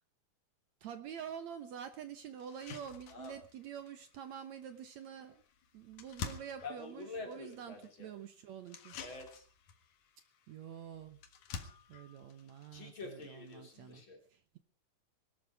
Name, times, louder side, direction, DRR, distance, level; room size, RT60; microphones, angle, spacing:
voice 1, 0.8-5.4 5.7-9.0 10.5-11.2 11.9-14.0 14.3-14.4, right 8 dB, 65° right, 10 dB, 2.2 m, -47 dB
sound 1, 1.4-1.5 1.9-2.0 2.4-14.0, left 6 dB, 65° left, 2.8 m, -51 dB
voice 2, 6.6-8.1 9.0-9.5 12.7-14.2, left 3 dB, 40° left, 3 dB, 3.8 m, -47 dB
21.5 x 12.5 x 4.8 m, 0.38 s
omnidirectional pair, 3.8 m